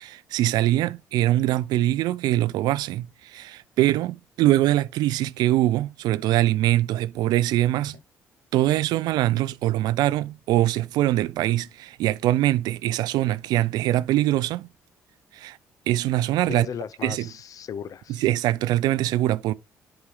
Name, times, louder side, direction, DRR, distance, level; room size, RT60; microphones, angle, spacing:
voice 1, 0.0-8.0 8.5-14.7 15.3-15.6 15.9-16.7 17.0-17.3 18.2-19.5, right 14 dB, 70° right, 0.4 m, -23 dB
voice 2, 16.4-18.2, left 8 dB, 55° left, 0.5 m, -36 dB
11.0 x 4.9 x 2.4 m
hypercardioid pair, 50°, 7 cm